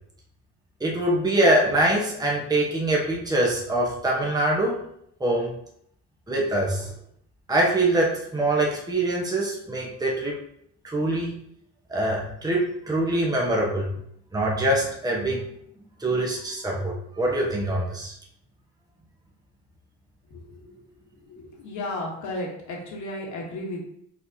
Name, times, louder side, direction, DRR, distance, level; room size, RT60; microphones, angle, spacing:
voice 1, 0.8-4.8 5.2-5.5 6.3-6.9 7.5-10.4 10.8-11.4 11.9-13.9 14.3-15.4 16.0-18.1, right 1 dB, 15° right, -3 dB, 1.1 m, -24 dB
voice 2, 20.3-20.7 21.3-23.8, left 1 dB, 75° left, -1 dB, 1.4 m, -34 dB
4.4 x 4.0 x 2.8 m, 0.71 s
cardioid pair, 90°, 30 cm